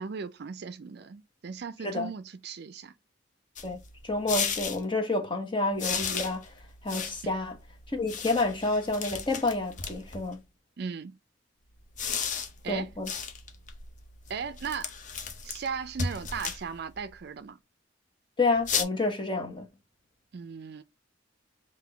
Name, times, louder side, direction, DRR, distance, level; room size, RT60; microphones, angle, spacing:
voice 1, 0.0-2.9 10.8-11.2 12.3-12.9 14.3-14.9 15.4-17.6 20.3-20.8, right 6 dB, 55° right, 0.4 m, -37 dB
sound 1, 3.6-4.8 5.8-10.3 11.8-17.2 18.6-18.8, left 6 dB, 40° left, 0.6 m, -35 dB
voice 2, 3.6-6.5 6.8-7.6 7.9-10.4 12.7-13.1 18.4-19.7, left 2 dB, 25° left, 1.1 m, -29 dB
3.7 x 2.6 x 3.3 m
head